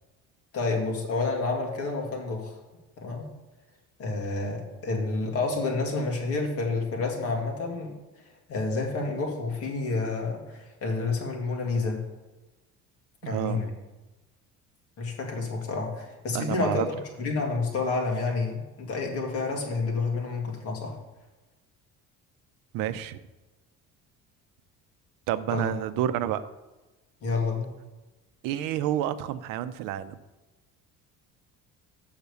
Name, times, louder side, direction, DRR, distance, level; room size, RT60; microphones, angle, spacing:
voice 1, 0.5-2.6 3.0-3.3 4.0-7.9 8.5-12.0 13.2-13.7 15.0-16.8 17.2-21.0 25.5-25.7 27.2-27.7, left 3 dB, 45° left, 0 dB, 1.9 m, -29 dB
voice 2, 13.2-13.6 16.3-16.9 22.7-23.2 25.3-26.4 28.4-30.1, right 11 dB, 80° right, 12 dB, 0.6 m, -29 dB
6.7 x 5.8 x 7.0 m, 1.1 s
cardioid pair, 170°, 33 cm